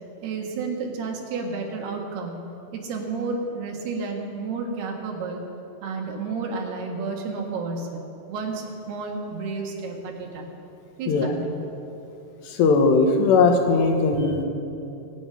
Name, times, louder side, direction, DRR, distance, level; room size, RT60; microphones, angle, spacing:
voice 1, 0.2-2.4 2.7-5.4 5.8-10.5 11.0-11.6, right 4 dB, 75° right, 1 dB, 3.6 m, -31 dB
voice 2, 12.5-14.4, left 4 dB, 85° left, 4 dB, 3.5 m, -19 dB
23.0 x 9.4 x 5.8 m, 2.8 s
omnidirectional pair, 4.8 m